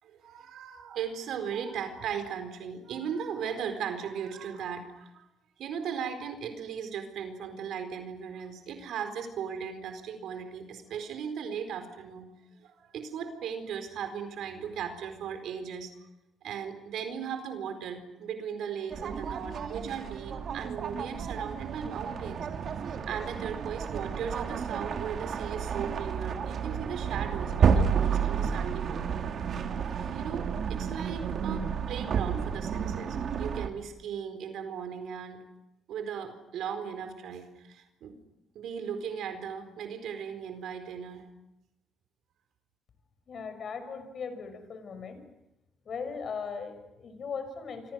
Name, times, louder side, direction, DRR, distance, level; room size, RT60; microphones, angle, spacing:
voice 1, 0.0-5.2 5.6-12.3 12.6-15.9 16.4-22.5 23.0-29.2 30.1-35.4 35.9-38.2 38.5-41.3, right 7 dB, 80° right, 7 dB, 4.5 m, -37 dB
sound 1, 18.9-33.7, right 7 dB, 60° right, 2.8 m, -31 dB
voice 2, 43.3-45.2 45.9-47.9, left 5 dB, 55° left, 10 dB, 6.0 m, -38 dB
29.5 x 26.0 x 6.5 m, 0.91 s
cardioid pair, 90°, 0 cm